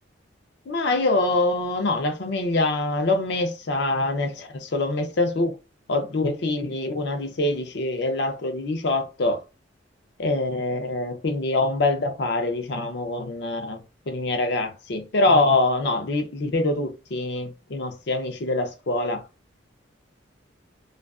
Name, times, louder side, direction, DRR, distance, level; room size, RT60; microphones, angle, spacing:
voice 1, 0.7-5.6 5.9-9.4 10.2-13.8 14.1-19.2, left 2 dB, 60° left, 0.5 m, -24 dB
2.4 x 2.3 x 2.3 m
head